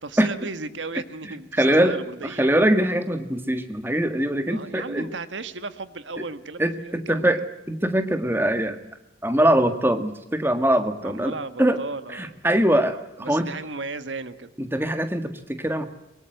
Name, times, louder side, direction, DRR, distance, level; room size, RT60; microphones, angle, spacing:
voice 1, 0.0-2.5 4.5-7.3 11.0-12.4 13.2-14.5, right 3 dB, 85° right, 12 dB, 1.6 m, -35 dB
voice 2, 1.2-5.1 6.2-6.3 6.6-8.8 9.2-11.8 12.1-13.5 14.6-15.9, right 1 dB, 10° right, 8 dB, 1.7 m, -23 dB
23.5 x 23.0 x 7.8 m, 0.86 s
head